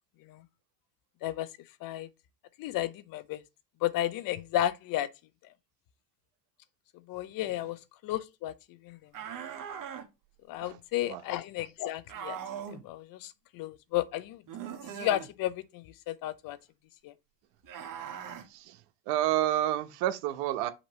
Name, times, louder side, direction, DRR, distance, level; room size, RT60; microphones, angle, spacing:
voice 1, 2.6-3.4 3.8-5.1 7.1-8.5 8.8-9.1 10.5-12.4 12.7-14.4 14.8-16.6 17.0-17.1, left 13 dB, 55° left, 0.8 m, -33 dB
sound 1, 9.1-10.1 12.1-12.8 14.5-15.3 17.6-18.5, right 8 dB, 50° right, 1.4 m, -40 dB
voice 2, 18.4-20.7, right 13 dB, 70° right, 1.0 m, -30 dB
5.9 x 2.9 x 5.5 m
supercardioid pair, 110°, 41 cm